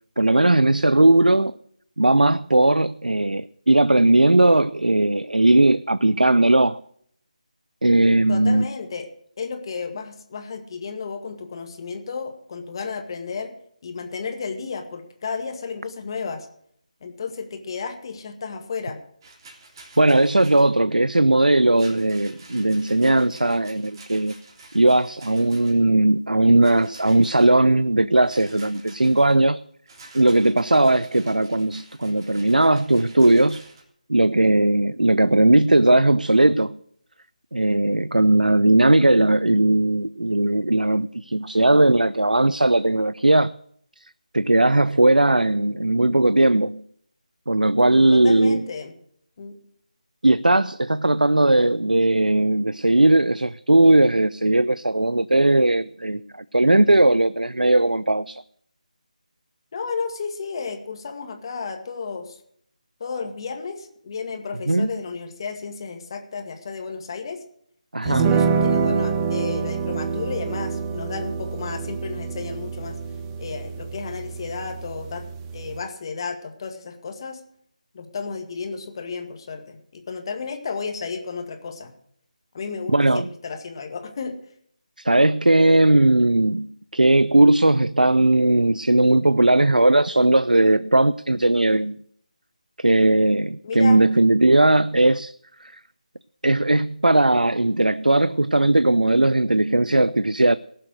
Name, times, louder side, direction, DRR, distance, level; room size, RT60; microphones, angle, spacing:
voice 1, 0.2-1.5 2.0-6.8 7.8-8.7 20.0-24.3 24.7-29.6 30.1-33.6 34.1-36.8 37.5-43.5 44.0-44.1 44.3-46.8 47.5-48.7 50.2-56.2 56.5-58.4 64.7-64.9 67.9-68.3 82.9-83.3 85.0-92.0 92.8-95.4 95.6-95.8 96.4-100.6, right 2 dB, 90° right, 0.5 m, -18 dB
voice 2, 8.3-9.1 9.4-13.5 13.8-16.5 17.0-19.0 48.1-48.9 49.4-49.6 59.7-62.4 63.0-67.4 68.0-73.0 73.4-75.3 75.5-77.4 77.9-81.9 82.5-84.4 93.6-94.0, left 5 dB, 35° left, 1.9 m, -33 dB
Rattle, 19.2-20.7 21.7-25.9 26.6-27.5 28.2-29.4 29.9-33.8, right 3 dB, 30° right, 3.5 m, -48 dB
sound 1, 68.1-75.8, right 5 dB, 15° right, 0.9 m, -26 dB
18.0 x 7.7 x 6.5 m
figure-of-eight pair, 160°, 4 cm